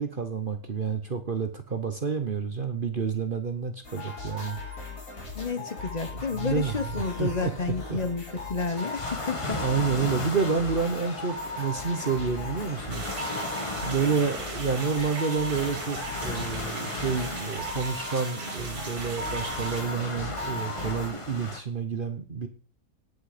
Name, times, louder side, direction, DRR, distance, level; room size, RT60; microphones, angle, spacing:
voice 1, 0.0-4.6 6.1-7.5 7.9-8.0 9.4-13.1 13.8-22.5, right 5 dB, 40° right, 8 dB, 1.1 m, -29 dB
sound 1, 3.8-21.1, left 2 dB, 75° left, 5.3 m, -38 dB
voice 2, 5.3-9.6, left 4 dB, 35° left, 11 dB, 0.7 m, -31 dB
sound 2, 8.7-21.6, left 2 dB, 20° left, 1.5 m, -37 dB
sound 3, 12.9-19.8, right 3 dB, 85° right, 2.5 m, -39 dB
18.0 x 6.4 x 5.0 m, 0.39 s
omnidirectional pair, 1.6 m